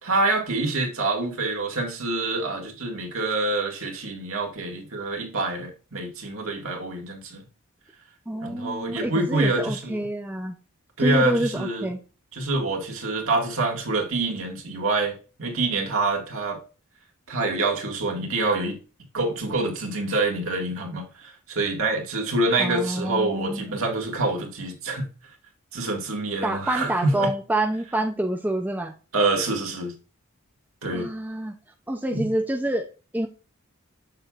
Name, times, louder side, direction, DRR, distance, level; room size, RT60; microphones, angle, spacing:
voice 1, 0.0-7.4 8.4-10.0 11.0-11.9 12.3-15.1 15.4-16.6 17.3-18.8 19.1-25.1 25.7-27.3 29.1-29.9 30.8-31.1 32.1-32.3, right 2 dB, 65° right, 1.9 m, -26 dB
voice 2, 8.3-10.6 11.0-12.0 22.6-23.8 26.4-28.9 30.9-31.5 31.9-32.9 33.1-33.3, right 1 dB, 10° right, 0.5 m, -27 dB
7.8 x 6.6 x 2.4 m
head